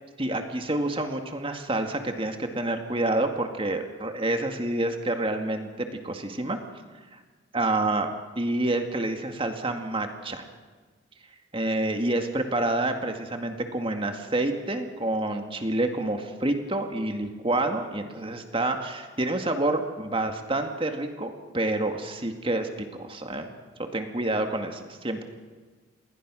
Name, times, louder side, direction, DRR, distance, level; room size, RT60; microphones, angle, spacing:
voice 1, 0.2-6.6 7.1-7.2 7.5-10.4 11.5-23.5 23.9-25.2, right 2 dB, 25° right, 5 dB, 2.0 m, -28 dB
28.0 x 21.0 x 6.3 m, 1.4 s
head